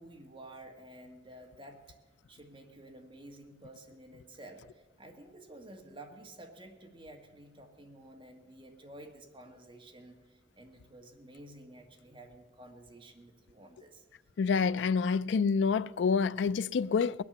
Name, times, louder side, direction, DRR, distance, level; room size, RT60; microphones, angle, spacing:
voice 1, 0.0-1.8 2.3-14.1, right 1 dB, 30° right, 1.7 m, -51 dB
voice 2, 14.4-17.2, left 5 dB, 80° left, 0.4 m, -27 dB
20.5 x 8.5 x 6.8 m
head